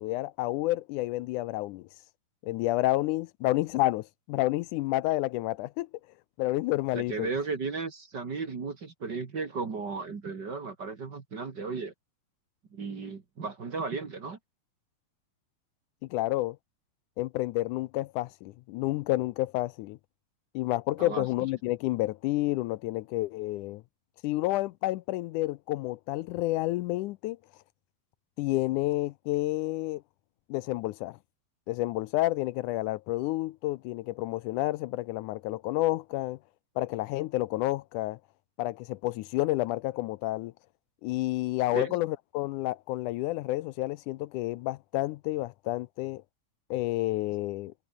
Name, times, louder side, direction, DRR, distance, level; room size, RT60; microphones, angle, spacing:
voice 1, 0.0-1.9 2.4-5.9 6.4-7.3 16.1-16.6 17.2-20.0 20.6-23.8 24.2-27.4 28.4-30.0 30.5-31.2 31.7-36.4 36.8-38.2 38.6-40.5 41.0-46.2 46.7-47.7, left 18 dB, 80° left, 2.0 m, -30 dB
voice 2, 6.9-11.9 12.7-14.4 21.0-21.3 41.7-42.0, right 4 dB, 35° right, 2.3 m, -35 dB
omnidirectional pair, 3.7 m